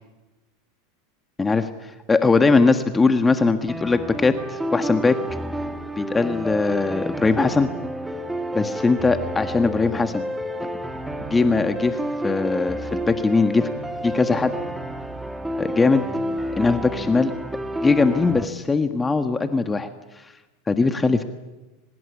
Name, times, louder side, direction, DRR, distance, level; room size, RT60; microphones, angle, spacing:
voice 1, 1.4-5.2 6.0-7.7 8.5-10.2 11.3-13.7 14.0-14.5 15.6-16.0 16.5-17.3 17.8-19.9 20.2-20.3 20.7-21.2, left 4 dB, 15° left, 8 dB, 1.5 m, -20 dB
sound 1, 3.7-18.5, equal, 5° right, 2.2 m, -30 dB
23.5 x 20.5 x 9.8 m, 1.1 s
hypercardioid pair, 105°, 0 cm